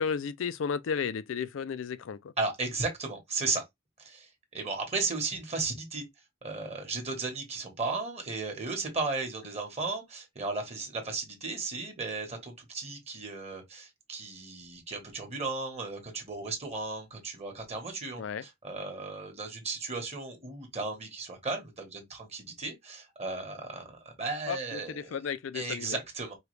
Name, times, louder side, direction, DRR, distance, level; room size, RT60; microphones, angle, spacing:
voice 1, 0.0-2.3 18.2-18.4 24.5-26.0, left 6 dB, 70° left, 0.4 m, -33 dB
voice 2, 2.4-3.6 4.0-6.0 6.4-25.2 25.5-26.3, right 3 dB, 35° right, 1.4 m, -35 dB
4.8 x 2.4 x 3.2 m
head